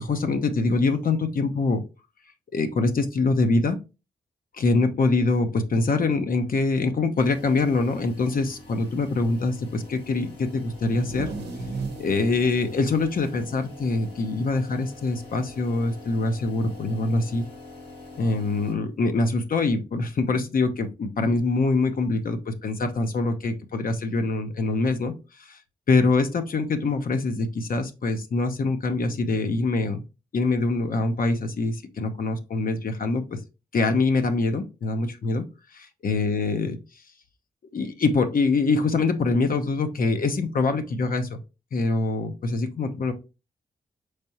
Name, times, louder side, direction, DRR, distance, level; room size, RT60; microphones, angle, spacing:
voice 1, 0.0-1.8 2.5-3.8 4.6-11.3 12.0-17.4 18.2-25.6 25.9-30.0 30.3-33.2 33.7-35.4 35.7-36.8 37.7-41.4 41.7-43.1, left 3 dB, 55° left, 7 dB, 0.7 m, -24 dB
sound 1, 7.2-18.7, left 2 dB, 90° left, 1.5 m, -45 dB
sound 2, 10.7-14.5 14.8-14.9 15.3-15.8 16.9-17.0 18.0-18.1, right 4 dB, 85° right, 0.7 m, -37 dB
4.5 x 3.3 x 2.8 m, 0.29 s
supercardioid pair, 45°, 17 cm